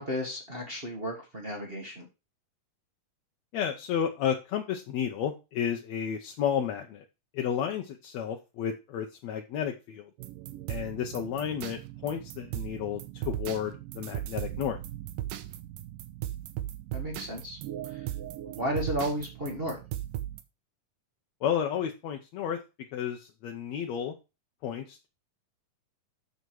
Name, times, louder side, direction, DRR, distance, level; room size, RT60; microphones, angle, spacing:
voice 1, 0.0-2.1 16.9-17.6 17.8-18.1 18.4-19.8, equal, 50° right, 0 dB, 0.6 m, -33 dB
voice 2, 3.5-7.0 7.3-10.1 10.7-14.8 21.4-22.6 22.9-24.1 24.6-25.1, left 8 dB, 70° left, 3 dB, 1.7 m, -32 dB
sound 1, 10.2-20.4, right 13 dB, 80° right, 2.5 m, -38 dB
7.8 x 6.5 x 4.7 m, 0.28 s
omnidirectional pair, 4.0 m